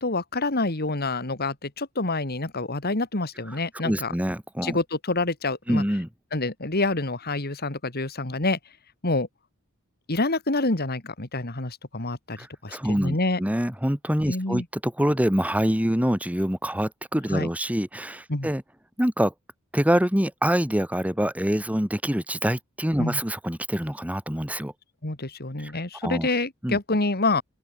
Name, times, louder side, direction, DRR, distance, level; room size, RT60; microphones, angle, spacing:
voice 1, 0.0-4.1 4.6-5.8 6.3-8.6 9.0-9.3 10.1-12.4 12.6-13.4 14.3-14.6 17.3-17.5 18.3-18.5 23.0-23.2 25.0-27.4, left 2 dB, 50° left, 2.7 m, -27 dB
voice 2, 3.5-4.8 5.7-6.1 12.4-18.6 19.0-19.3 19.7-24.7 25.6-25.7 26.0-26.3 26.6-26.8, equal, 5° right, 2.4 m, -25 dB
open air
head